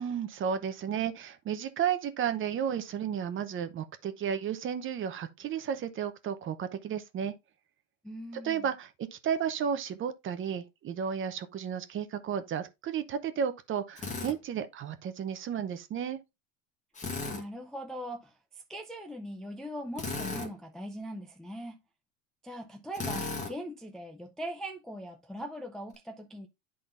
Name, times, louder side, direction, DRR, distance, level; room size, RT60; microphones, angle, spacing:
voice 1, 0.0-7.3 8.4-16.2, right 8 dB, 30° right, 0.7 m, -33 dB
voice 2, 8.0-8.7 17.2-21.8 22.4-26.5, equal, ahead, 0.4 m, -41 dB
Drill, 14.0-14.4 17.0-17.4 20.0-20.5 22.9-23.5, left 3 dB, 20° left, 1.3 m, -35 dB
10.5 x 3.9 x 2.5 m
supercardioid pair, 115°, 40 cm